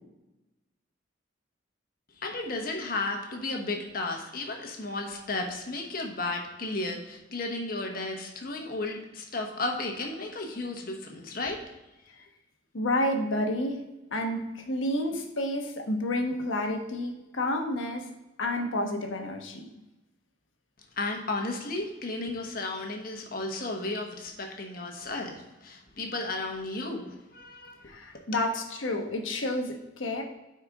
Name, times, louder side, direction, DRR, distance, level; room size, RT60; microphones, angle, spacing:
voice 1, 2.2-11.6 21.0-27.9, left 2 dB, 50° left, 2 dB, 1.2 m, -34 dB
voice 2, 12.7-18.1 18.4-19.7 27.9-30.2, left 1 dB, 90° left, 3 dB, 1.1 m, -30 dB
9.3 x 4.5 x 3.6 m, 1.0 s
head